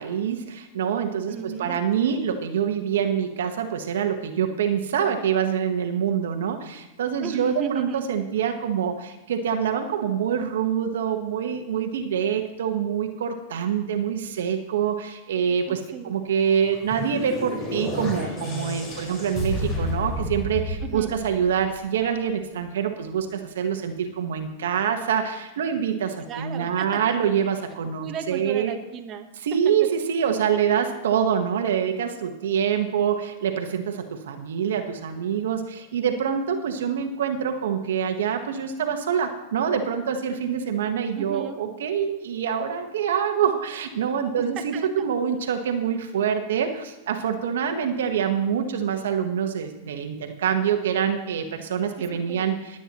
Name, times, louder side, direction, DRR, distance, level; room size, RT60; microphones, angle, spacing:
voice 1, 0.8-1.3 1.6-6.6 7.0-8.9 9.3-14.9 15.3-15.6 16.1-20.6 20.9-22.9 23.1-23.2 23.6-23.9 24.2-25.2 25.6-26.1 26.4-28.7 29.5-32.1 32.4-33.1 33.4-33.8 34.5-35.6 35.9-43.5 43.8-46.7 47.1-50.1 50.4-51.4 51.7-52.5, right 8 dB, 80° right, 5 dB, 1.3 m, -25 dB
voice 2, 1.3-2.3 7.2-8.1 15.7-16.1 20.8-21.1 26.3-27.2 28.0-29.3 29.6-29.7 30.7-30.8 41.2-41.6 44.6-45.1 52.1-52.6, right 7 dB, 35° right, 4 dB, 1.2 m, -35 dB
sound 1, 16.5-21.8, left 1 dB, 30° left, 5.0 m, -31 dB
19.0 x 9.0 x 3.0 m, 1.0 s
hypercardioid pair, 125°, 0 cm